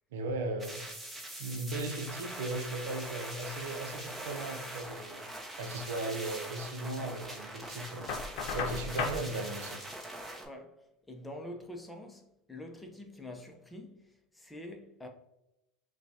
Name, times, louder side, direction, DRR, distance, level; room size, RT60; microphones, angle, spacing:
voice 1, 0.1-0.8 1.4-5.3 5.6-8.1 8.5-9.8, right 2 dB, 75° right, 0.7 m, -37 dB
sound 1, 0.6-10.4, right 1 dB, 10° right, 1.0 m, -43 dB
Knock, 8.1-9.2, left 5 dB, 60° left, 0.8 m, -34 dB
voice 2, 10.4-10.8 11.1-12.2 12.5-15.1, left 1 dB, 10° left, 0.8 m, -45 dB
5.8 x 2.4 x 2.8 m
hypercardioid pair, 90°, 0 cm